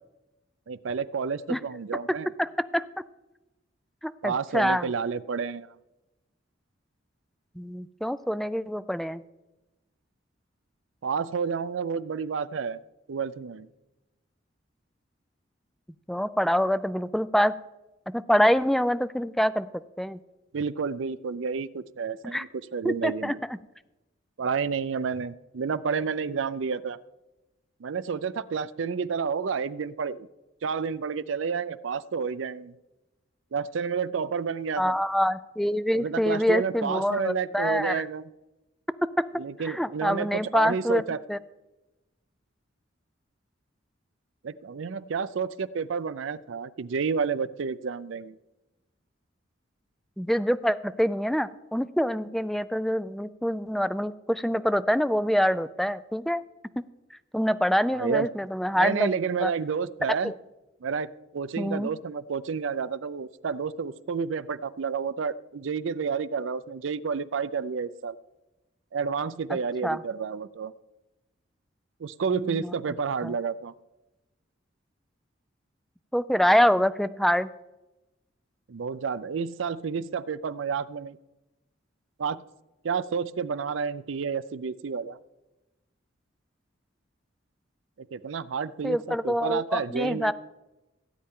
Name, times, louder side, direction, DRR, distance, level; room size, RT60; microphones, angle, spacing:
voice 1, 0.7-2.3 4.2-5.8 11.0-12.8 13.1-13.7 20.5-23.4 24.4-27.0 27.8-30.3 30.6-32.7 33.5-35.0 35.9-38.3 39.4-41.2 44.4-48.4 57.9-58.3 58.7-60.3 60.8-61.1 61.3-68.2 68.9-70.7 72.0-73.7 78.7-81.2 82.2-82.4 82.8-85.2 88.0-90.3, right 5 dB, 75° right, 15 dB, 0.5 m, -30 dB
voice 2, 2.4-2.9 4.0-4.9 7.6-9.2 16.1-17.5 18.1-19.7 20.0-20.2 22.2-22.5 22.8-23.3 34.8-38.1 39.6-41.0 41.3-41.4 50.2-56.4 56.8-56.9 57.3-59.1 59.4-59.5 60.1-60.3 61.6-61.9 69.5-70.0 72.4-72.7 73.2-73.4 76.1-77.5 88.8-90.3, equal, ahead, 14 dB, 0.3 m, -25 dB
17.5 x 8.8 x 3.7 m, 1.0 s
head